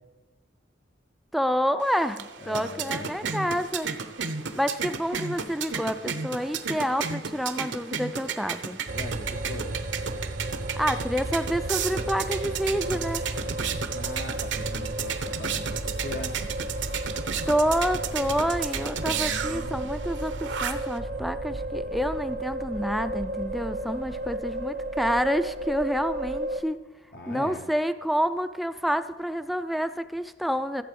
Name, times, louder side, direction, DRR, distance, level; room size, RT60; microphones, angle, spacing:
voice 1, 1.3-3.9 4.6-8.8 10.8-13.2 17.5-26.8 27.3-30.8, equal, ahead, 10 dB, 0.3 m, -28 dB
sound 1, 1.8-21.0, right 6 dB, 75° right, 0.9 m, -33 dB
voice 2, 2.4-3.3 8.9-9.8 13.9-16.4 19.1-19.9 27.1-27.7, left 2 dB, 55° left, 4 dB, 0.8 m, -40 dB
sound 2, 8.9-26.6, right 1 dB, 45° right, 0.6 m, -33 dB
14.5 x 7.5 x 5.2 m, 1.2 s
head